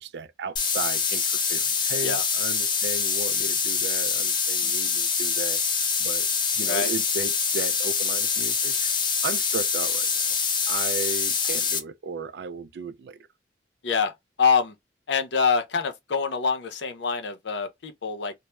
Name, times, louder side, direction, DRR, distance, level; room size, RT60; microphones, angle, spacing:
voice 1, 0.0-6.3 6.5-8.9 9.2-10.3 10.7-13.3, right 4 dB, 70° right, 0.3 m, -35 dB
sound 1, 0.6-11.8, left 6 dB, 25° left, 0.4 m, -25 dB
voice 2, 13.8-14.8 15.1-18.3, left 5 dB, 80° left, 0.6 m, -25 dB
2.1 x 2.1 x 2.9 m
head